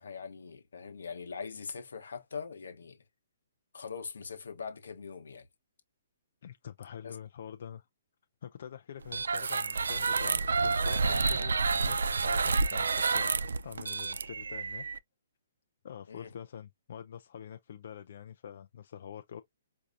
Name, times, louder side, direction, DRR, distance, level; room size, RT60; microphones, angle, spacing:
voice 1, 0.0-3.0 3.7-5.5 7.0-7.2 16.1-16.3, left 5 dB, 80° left, 0.9 m, -42 dB
voice 2, 6.4-7.9 8.4-13.4 13.6-14.9 15.8-19.4, left 8 dB, 60° left, 0.4 m, -45 dB
sound 1, 9.1-15.0, right 4 dB, 80° right, 0.3 m, -29 dB
4.6 x 2.5 x 2.5 m
hypercardioid pair, 145°, 0 cm